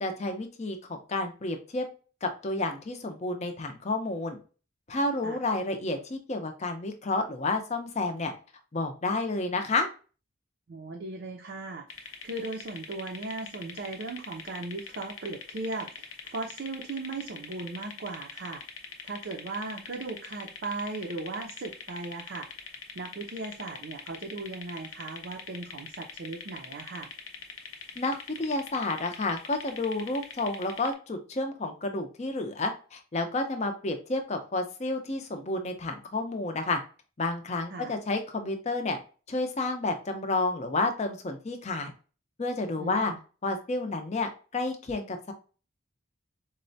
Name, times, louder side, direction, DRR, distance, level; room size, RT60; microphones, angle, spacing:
voice 1, 0.0-1.9 2.2-4.4 4.9-8.3 8.7-9.9 28.0-36.8 37.2-39.0 39.3-41.9 42.4-43.1 43.4-45.3, left 2 dB, 35° left, 5 dB, 0.5 m, -30 dB
voice 2, 10.7-18.6 19.0-22.5 22.9-27.1 37.7-37.9 42.8-43.2, right 3 dB, 55° right, 0 dB, 0.5 m, -37 dB
sound 1, 11.9-30.9, left 6 dB, 85° left, 0.6 m, -43 dB
4.1 x 2.1 x 2.6 m, 0.36 s
head